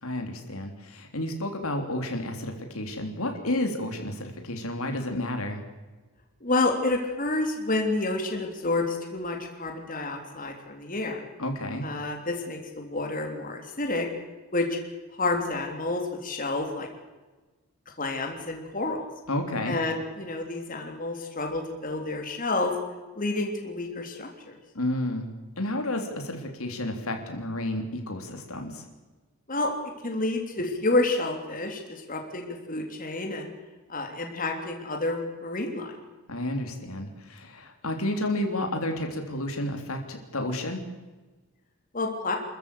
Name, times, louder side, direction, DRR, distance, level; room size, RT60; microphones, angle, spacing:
voice 1, 0.0-5.6 11.4-11.9 19.3-19.8 24.7-25.3 25.6-28.8 36.3-40.8, left 1 dB, 75° left, 4 dB, 3.4 m, -31 dB
voice 2, 6.4-11.2 11.8-14.1 14.5-14.8 15.1-16.9 18.0-19.1 19.6-22.8 23.1-24.6 29.5-29.7 30.0-33.5 33.9-35.9 41.9-42.4, left 2 dB, 40° left, 2 dB, 3.3 m, -29 dB
27.5 x 14.5 x 8.5 m, 1.2 s
head